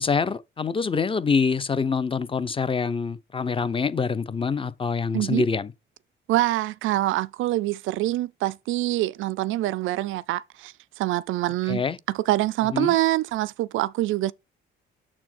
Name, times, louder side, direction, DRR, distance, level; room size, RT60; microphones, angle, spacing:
voice 1, 0.0-5.7 11.7-12.0 12.7-12.9, left 5 dB, 25° left, 0.6 m, -25 dB
voice 2, 5.1-5.4 6.3-11.8 12.1-14.3, right 16 dB, 80° right, 0.4 m, -25 dB
7.0 x 4.4 x 4.4 m
cardioid pair, 90°, 20 cm